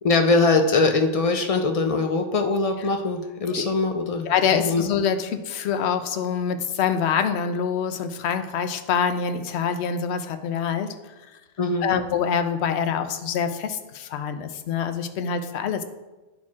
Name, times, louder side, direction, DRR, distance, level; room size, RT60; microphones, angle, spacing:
voice 1, 0.0-4.8 11.6-11.9, left 3 dB, 55° left, 5 dB, 0.4 m, -22 dB
voice 2, 4.3-11.1 11.8-15.8, left 7 dB, 75° left, 9 dB, 0.9 m, -25 dB
12.0 x 4.3 x 2.4 m, 1.1 s
omnidirectional pair, 1.1 m